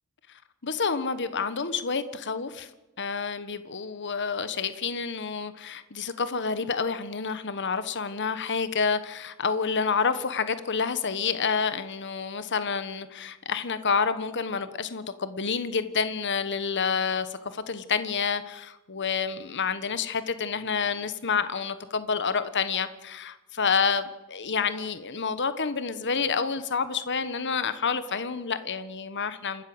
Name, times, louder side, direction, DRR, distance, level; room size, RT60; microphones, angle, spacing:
voice 1, 0.6-2.7 3.0-29.6, left 5 dB, 55° left, 13 dB, 1.2 m, -28 dB
28.0 x 13.0 x 7.8 m, 1.1 s
head